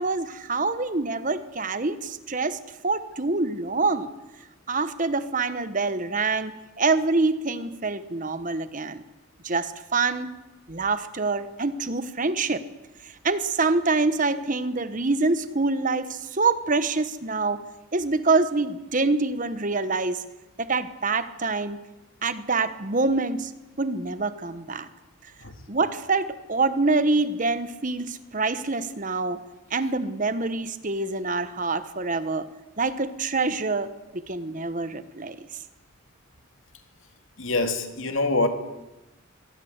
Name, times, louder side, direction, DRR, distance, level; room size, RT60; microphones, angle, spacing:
voice 1, 0.0-2.6 2.8-4.1 4.7-9.0 9.4-10.3 10.7-12.6 13.0-17.6 17.9-20.2 20.6-21.8 22.2-23.5 23.8-24.9 25.7-29.4 29.7-32.5 32.8-35.4, right 3 dB, 35° right, 1.1 m, -26 dB
voice 2, 37.4-38.5, left 2 dB, 65° left, 2.5 m, -24 dB
24.0 x 18.0 x 8.1 m
head